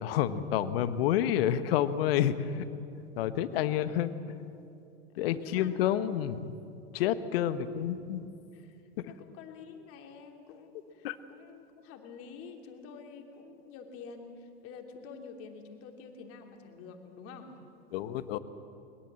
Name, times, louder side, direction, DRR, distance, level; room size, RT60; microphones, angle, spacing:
voice 1, 0.0-2.7 3.2-4.1 5.2-6.5 6.9-8.3 9.0-9.1 11.0-11.2 17.9-18.4, left 11 dB, 55° left, 12 dB, 1.3 m, -29 dB
voice 2, 5.2-5.8 7.1-7.6 8.5-8.8 9.0-17.6, left 5 dB, 40° left, 4 dB, 3.0 m, -48 dB
21.5 x 21.0 x 7.6 m, 2.7 s
hypercardioid pair, 100°, 35 cm